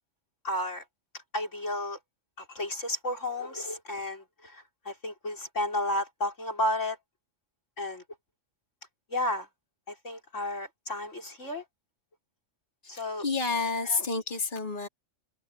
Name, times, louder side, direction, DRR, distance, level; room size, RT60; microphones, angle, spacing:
voice 1, 0.4-0.8 1.3-2.0 2.4-7.0 7.8-8.0 9.1-9.5 9.9-11.6 12.9-13.3 13.8-14.0, left 1 dB, 75° left, 5.3 m, -32 dB
voice 2, 12.9-14.9, left 4 dB, 40° left, 3.5 m, -30 dB
omnidirectional pair, 1.3 m